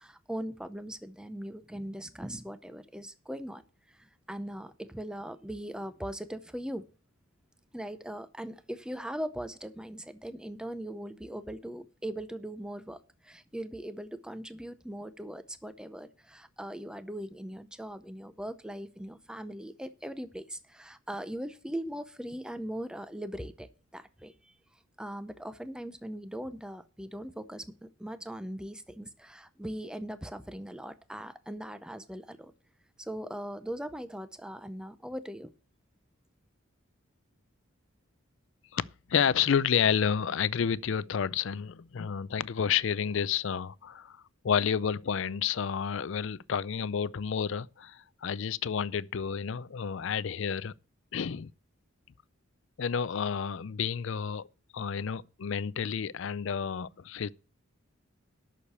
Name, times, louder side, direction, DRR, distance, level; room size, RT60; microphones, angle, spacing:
voice 1, 0.0-3.6 3.9-6.8 7.7-23.7 23.9-24.5 25.0-32.5 33.0-35.5, right 1 dB, 5° right, 0.6 m, -40 dB
voice 2, 39.1-44.2 44.4-50.7 51.1-51.5 52.8-54.5 54.7-57.3, left 7 dB, 65° left, 0.4 m, -30 dB
8.4 x 6.5 x 8.1 m
head